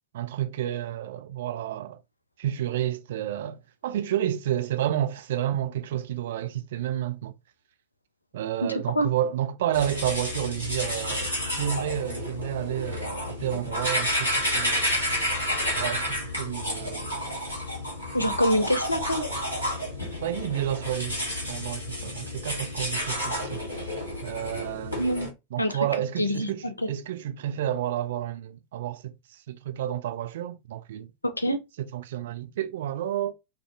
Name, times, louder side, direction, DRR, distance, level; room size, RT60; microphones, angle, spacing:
voice 1, 0.1-2.0 2.4-7.3 8.3-14.9 15.7-17.3 20.2-21.2 21.5-23.9 24.2-25.0 25.5-31.1 31.8-33.3, right 11 dB, 55° right, 0.3 m, -30 dB
voice 2, 8.6-9.1 18.1-19.2 25.0-25.3 25.6-25.8 26.2-26.9 31.2-31.6, equal, 85° left, 0.4 m, -25 dB
sound 1, 9.7-25.3, left 1 dB, 85° right, 1.1 m, -30 dB
2.4 x 2.3 x 2.5 m
figure-of-eight pair, 90°, 0 cm